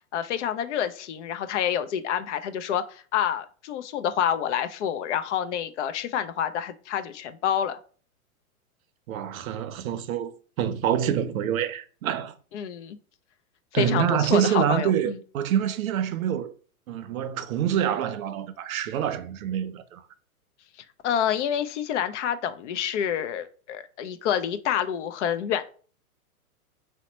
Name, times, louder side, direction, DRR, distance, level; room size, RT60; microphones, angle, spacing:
voice 1, 0.1-7.8 12.5-13.0 13.7-15.2 21.0-25.7, left 9 dB, 55° left, 0.5 m, -28 dB
voice 2, 9.1-12.3 13.7-16.5 16.9-20.0, right 9 dB, 70° right, 0.6 m, -26 dB
2.8 x 2.1 x 4.0 m
hypercardioid pair, 125°, 44 cm